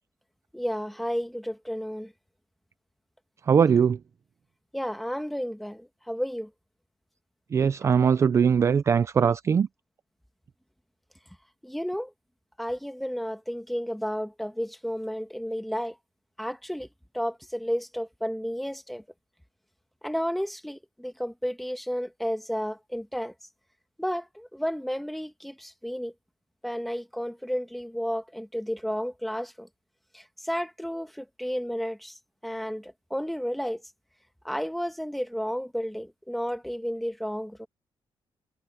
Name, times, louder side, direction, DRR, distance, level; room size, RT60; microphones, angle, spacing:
voice 1, 0.5-2.1 4.7-6.5 7.8-7.9 11.6-12.1 12.6-15.9 16.4-16.9 17.1-19.0 20.0-23.3 24.0-26.1 26.6-29.7 30.1-32.1 32.4-33.8 34.4-37.7, equal, ahead, 1.3 m, -32 dB
voice 2, 3.5-4.0 7.5-9.7, right 7 dB, 30° right, 0.4 m, -21 dB
cardioid pair, 160°, 9 cm